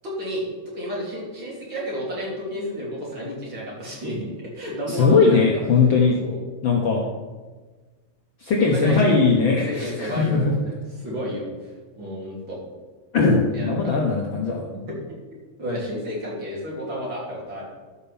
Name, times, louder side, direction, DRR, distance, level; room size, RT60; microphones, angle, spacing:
voice 1, 0.0-0.5 0.7-4.3 4.5-5.4 6.2-6.4 8.5-9.1 9.4-10.6 11.0-12.6 13.5-14.0 14.7-15.0 15.6-17.7, equal, 35° right, -5 dB, 3.6 m, -31 dB
voice 2, 4.9-6.2 6.6-7.0 8.4-10.5 13.1-14.7, left 4 dB, 90° left, -1 dB, 1.0 m, -19 dB
12.0 x 5.5 x 7.1 m, 1.3 s
omnidirectional pair, 3.9 m